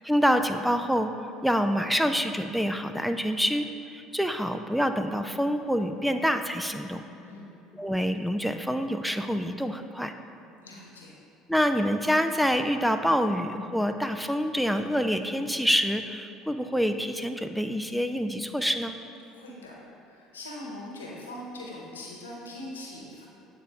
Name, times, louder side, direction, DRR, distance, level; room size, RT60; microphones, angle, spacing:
voice 1, 0.1-1.1 1.4-7.0 7.7-10.1 11.5-18.9, equal, ahead, 7 dB, 0.3 m, -26 dB
voice 2, 10.6-11.1 19.3-19.7 20.0-23.3, left 1 dB, 90° left, -3 dB, 1.0 m, -41 dB
8.5 x 3.8 x 3.5 m, 2.8 s
hypercardioid pair, 65°, 0 cm